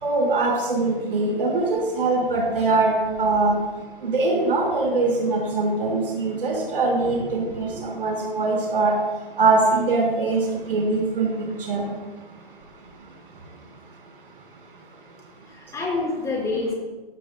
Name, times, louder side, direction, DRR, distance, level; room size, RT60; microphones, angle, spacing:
voice 1, 0.0-3.6 4.0-8.9 9.4-11.3 11.6-11.9, right 3 dB, 70° right, -2 dB, 5.0 m, -22 dB
voice 2, 7.1-7.9 15.5-16.7, left 3 dB, 10° left, -3 dB, 5.2 m, -29 dB
19.0 x 17.0 x 2.3 m, 1.2 s
hypercardioid pair, 140°, 29 cm